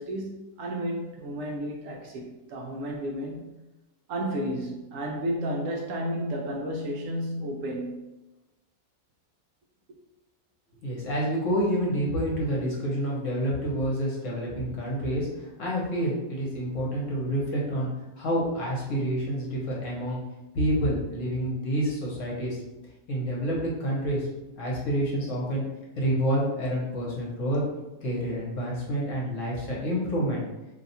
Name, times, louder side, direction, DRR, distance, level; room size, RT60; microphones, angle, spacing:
voice 1, 0.0-3.6 4.1-8.1, equal, 70° right, 0 dB, 0.9 m, -32 dB
voice 2, 10.8-17.9 18.2-20.2 20.5-22.6 23.1-24.3 24.6-25.6 26.0-27.6 28.0-30.4, equal, 60° left, -4 dB, 1.2 m, -28 dB
2.7 x 2.3 x 4.1 m, 1.0 s
omnidirectional pair, 1.6 m